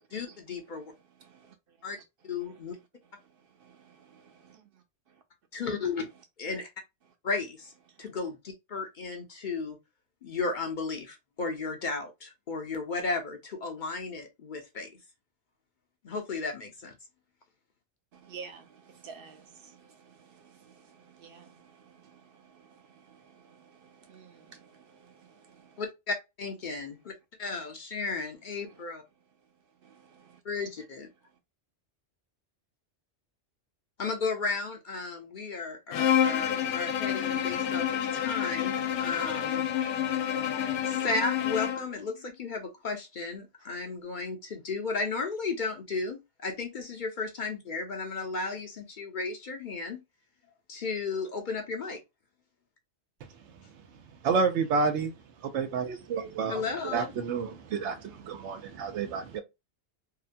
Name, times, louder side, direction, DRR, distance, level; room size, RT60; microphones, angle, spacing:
voice 1, 0.1-0.9 1.8-2.0 2.2-2.8 5.5-6.1 6.4-6.7 7.2-7.7 8.0-9.8 10.2-14.9 16.0-16.9 25.8-27.1 27.4-29.0 30.4-31.1 34.0-37.9 38.1-39.6 40.9-50.0 50.7-52.0 56.5-57.1, left 4 dB, 55° left, 0.6 m, -34 dB
voice 2, 0.8-1.9 2.4-2.6 3.2-4.8 7.9-8.1 18.1-25.8 28.6-28.8 29.8-30.4, right 6 dB, 60° right, 0.7 m, -53 dB
Bowed string instrument, 35.9-41.9, left 9 dB, 80° left, 0.9 m, -28 dB
voice 3, 54.2-55.1 55.4-57.5 57.8-59.4, right 5 dB, 85° right, 0.9 m, -29 dB
2.8 x 2.2 x 2.4 m
omnidirectional pair, 1.2 m